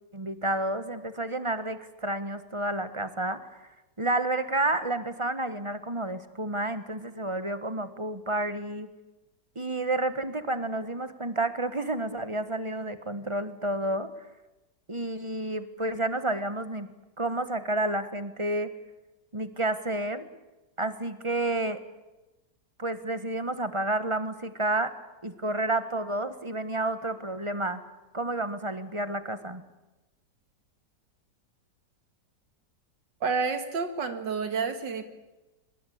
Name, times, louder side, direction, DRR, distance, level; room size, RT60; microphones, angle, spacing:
voice 1, 0.1-3.4 4.0-8.9 9.5-14.1 14.9-16.9 17.2-18.7 19.3-20.3 20.8-21.8 22.8-24.9 25.2-27.8 28.1-29.6, right 2 dB, 20° right, 11 dB, 1.4 m, -30 dB
voice 2, 33.2-35.0, right 5 dB, 85° right, 9 dB, 2.4 m, -29 dB
25.0 x 22.5 x 8.6 m, 1.0 s
omnidirectional pair, 1.9 m